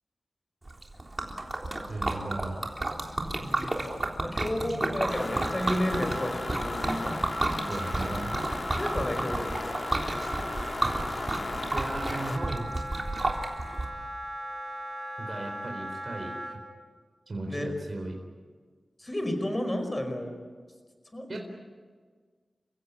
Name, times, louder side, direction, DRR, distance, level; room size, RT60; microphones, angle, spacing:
Liquid, 0.7-13.8, right 2 dB, 30° right, 3.6 m, -32 dB
voice 1, 1.9-2.7 7.7-8.3 11.7-12.7 15.2-16.3 17.3-18.1 21.3-21.4, right 2 dB, 50° right, 1 dB, 4.1 m, -36 dB
voice 2, 3.4-3.8 4.2-7.3 8.8-9.8 17.4-17.7 19.0-20.3 21.1-21.4, left 1 dB, 20° left, 6 dB, 5.2 m, -32 dB
sound 1, 5.1-12.4, left 2 dB, 40° left, 1.9 m, -35 dB
Wind instrument woodwind instrument, 5.3-16.6, right 1 dB, 5° right, 4.4 m, -40 dB
30.0 x 16.0 x 9.9 m, 1.5 s
wide cardioid pair, 85°, 0 cm